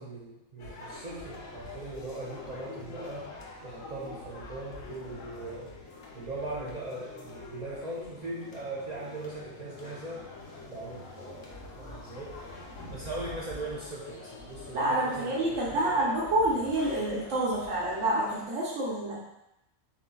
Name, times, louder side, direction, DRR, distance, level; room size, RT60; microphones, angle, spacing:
voice 1, 0.0-3.3 3.6-5.8 6.1-10.3 10.7-11.5 11.8-12.4 12.9-16.0, right 2 dB, 50° right, -5 dB, 0.5 m, -40 dB
sound 1, 0.6-18.5, left 2 dB, 85° left, 1.2 m, -45 dB
voice 2, 14.7-19.2, right 1 dB, 85° right, -5 dB, 1.2 m, -28 dB
7.1 x 2.6 x 2.3 m, 0.88 s
omnidirectional pair, 1.3 m